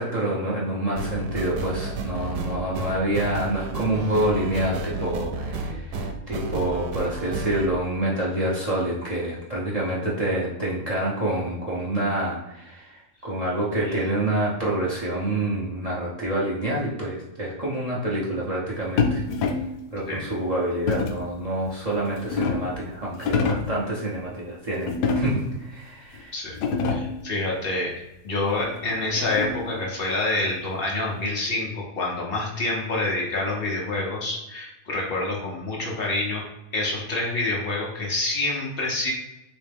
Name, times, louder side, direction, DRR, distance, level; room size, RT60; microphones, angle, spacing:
voice 1, 0.0-19.2 19.9-26.3, right 1 dB, 65° right, -5 dB, 0.3 m, -27 dB
sound 1, 1.0-7.7, right 3 dB, 85° right, 1.1 m, -31 dB
sound 2, 19.0-19.8 20.9-21.3 21.9-22.8 23.2-23.8 24.9-25.6 26.1-26.2 26.5-27.2 28.6-29.8, left 4 dB, 85° left, 1.1 m, -26 dB
voice 2, 26.8-36.4 36.7-39.1, left 2 dB, 45° left, -2 dB, 0.8 m, -27 dB
3.2 x 3.1 x 3.4 m, 0.93 s
omnidirectional pair, 1.7 m